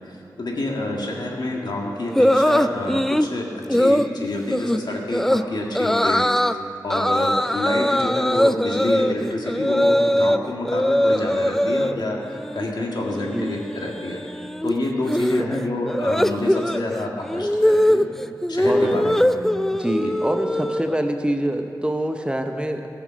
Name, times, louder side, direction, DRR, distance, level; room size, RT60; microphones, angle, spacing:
voice 1, 0.0-3.5 3.8-6.3 6.6-14.2 14.6-18.1 18.5-19.3 20.0-20.1, left 1 dB, 65° left, -1 dB, 1.9 m, -28 dB
sound 1, 2.1-3.3 3.7-4.1 4.5-4.8 5.1-5.4 5.7-6.5 6.9-10.4 10.6-11.9 12.3-12.7 12.9-21.1, equal, 5° left, 0.3 m, -21 dB
voice 2, 15.1-15.6 18.7-19.1 19.7-22.9, right 1 dB, 15° right, 5 dB, 0.7 m, -25 dB
15.0 x 7.2 x 6.3 m, 2.6 s
wide cardioid pair, 75°, 8 cm